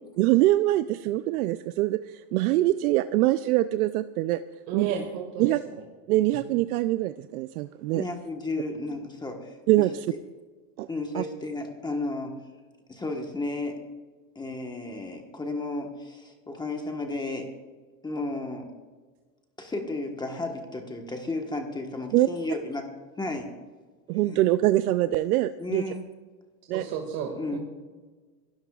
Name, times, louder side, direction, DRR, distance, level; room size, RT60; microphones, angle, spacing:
voice 1, 0.2-4.4 4.7-4.9 5.4-5.6 6.1-8.0 9.7-10.1 10.8-10.9 11.1-11.2 22.1-22.3 24.1-25.8 26.7-26.8, right 16 dB, 75° right, 12 dB, 0.6 m, -24 dB
voice 2, 4.7-5.5 26.7-27.6, right 8 dB, 50° right, 1 dB, 2.2 m, -32 dB
voice 3, 7.9-9.6 10.9-12.4 12.9-13.8 14.3-17.5 18.0-18.7 19.6-22.9 23.2-23.5 24.3-24.4 25.6-26.0 27.3-27.6, left 2 dB, 10° left, 2 dB, 1.3 m, -33 dB
26.5 x 13.0 x 2.4 m, 1.4 s
supercardioid pair, 145°, 45 cm